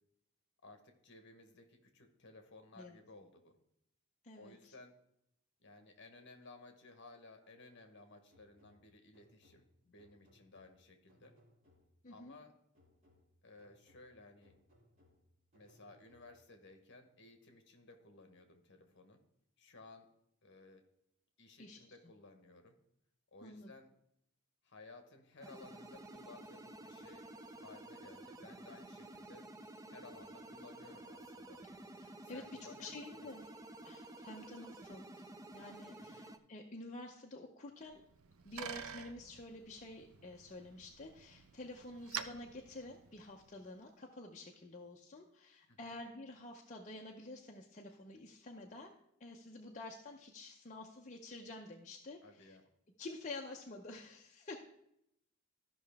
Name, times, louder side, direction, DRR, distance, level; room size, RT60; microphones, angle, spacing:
voice 1, 0.6-3.6 4.3-4.9 5.6-11.3 12.1-12.5 13.4-14.5 15.5-19.2 19.6-20.1 20.4-20.8 21.4-22.7 23.3-23.9 24.6-29.4 29.9-31.6 32.2-33.3 36.0-36.3 45.7-45.9 52.2-52.6, left 3 dB, 55° left, 6 dB, 1.2 m, -58 dB
voice 2, 4.2-4.7 12.0-12.4 21.6-22.0 23.4-23.7 32.0-33.5 33.8-35.2 35.5-38.0 38.4-48.9 49.2-52.6 53.0-54.6, left 2 dB, 35° left, 0 dB, 0.6 m, -49 dB
sound 1, 8.3-12.2 12.7-16.6, left 1 dB, 30° right, 3.2 m, -70 dB
sound 2, 25.4-36.4, right 1 dB, 15° right, 0.4 m, -52 dB
Bicycle, 37.9-43.6, right 8 dB, 70° right, 0.6 m, -49 dB
13.5 x 5.6 x 3.5 m, 0.77 s
head